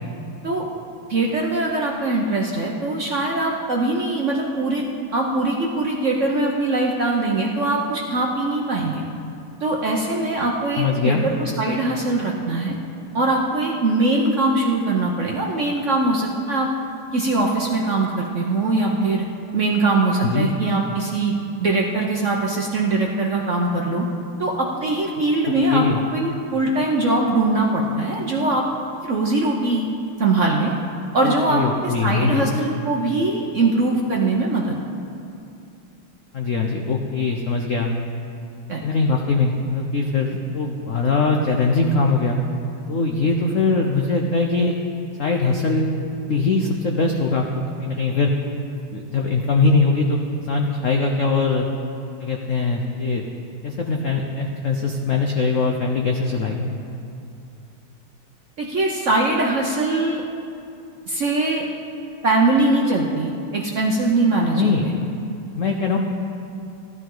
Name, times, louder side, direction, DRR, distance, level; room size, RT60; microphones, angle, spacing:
voice 1, 1.1-4.8 5.1-9.0 9.6-12.7 13.1-16.7 17.1-19.3 19.5-21.3 21.6-24.0 24.4-25.8 26.1-28.6 29.0-29.9 30.2-30.7 31.1-34.7 38.7-38.8 58.6-60.2 61.1-61.6 62.2-64.9, right 2 dB, 55° right, -1 dB, 0.8 m, -21 dB
voice 2, 10.8-11.2 20.2-20.5 25.7-26.0 31.2-32.5 36.3-37.9 38.8-42.4 42.9-44.8 45.2-46.0 46.3-48.3 48.9-51.7 52.2-53.2 53.6-56.7 64.5-64.8 65.5-66.0, left 3 dB, 90° left, 2 dB, 0.6 m, -21 dB
15.5 x 12.5 x 3.9 m, 2.6 s
omnidirectional pair, 2.4 m